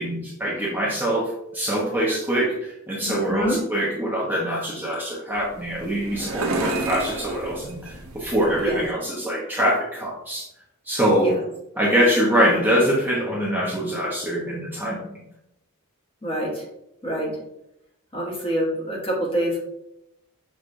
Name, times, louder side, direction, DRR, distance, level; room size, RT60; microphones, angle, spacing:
voice 1, 0.0-10.5 10.9-11.3 11.8-15.2, equal, 10° right, -6 dB, 0.8 m, -24 dB
voice 2, 3.0-3.6 8.6-8.8 11.2-11.4 16.2-16.6 17.0-17.4 18.1-19.6, equal, 25° left, -4 dB, 1.1 m, -26 dB
sound 1, 5.3-8.9, right 2 dB, 65° right, 0.6 m, -32 dB
6.2 x 2.4 x 2.6 m, 0.83 s
head